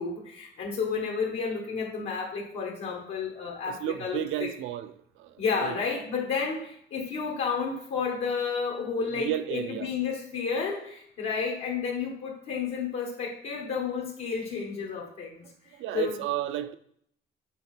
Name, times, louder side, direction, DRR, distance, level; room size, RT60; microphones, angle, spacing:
voice 1, 0.0-4.5 5.4-15.4 15.7-16.2, left 5 dB, 85° left, 1.4 m, -31 dB
voice 2, 3.7-5.3 5.6-5.7 9.0-9.9 15.8-16.8, right 12 dB, 85° right, 0.5 m, -32 dB
7.0 x 4.2 x 4.4 m
cardioid pair, 90°, 20 cm